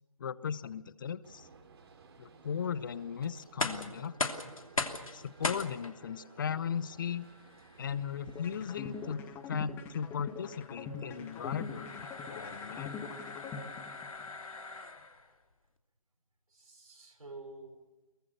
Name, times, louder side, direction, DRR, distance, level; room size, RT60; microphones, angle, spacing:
voice 1, 0.2-1.5 2.2-4.1 5.1-7.3 7.8-13.0, left 7 dB, 35° left, 19 dB, 0.9 m, -37 dB
Gunshot gunfire, 1.2-9.1, right 5 dB, 45° right, 3.0 m, -57 dB
sound 1, 3.4-15.3, left 3 dB, 70° left, 2.9 m, -40 dB
sound 2, 8.3-14.3, left 5 dB, 10° left, 1.5 m, -43 dB
voice 2, 16.5-17.8, right 3 dB, 75° right, 1 dB, 5.1 m, -50 dB
23.5 x 23.0 x 6.7 m, 1.1 s
figure-of-eight pair, 145°, 18 cm